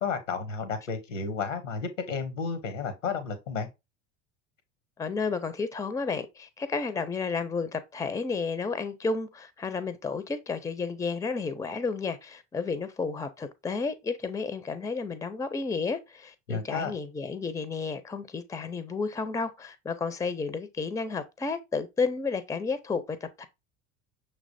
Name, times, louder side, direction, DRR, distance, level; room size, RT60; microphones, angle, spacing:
voice 1, 0.0-3.7 16.5-16.9, left 5 dB, 85° left, 0.9 m, -32 dB
voice 2, 5.0-23.5, left 4 dB, 10° left, 0.5 m, -32 dB
6.0 x 3.3 x 2.6 m
figure-of-eight pair, 65°, 37 cm